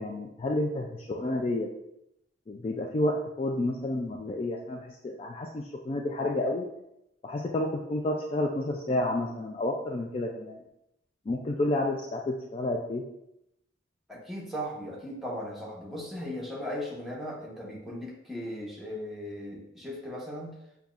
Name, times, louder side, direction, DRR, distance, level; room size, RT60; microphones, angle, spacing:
voice 1, 0.0-1.7 2.5-6.7 7.2-10.6 11.3-13.0, left 1 dB, 30° left, 1 dB, 0.3 m, -30 dB
voice 2, 14.1-20.6, equal, ahead, -5 dB, 1.0 m, -37 dB
6.8 x 2.3 x 2.4 m, 0.83 s
head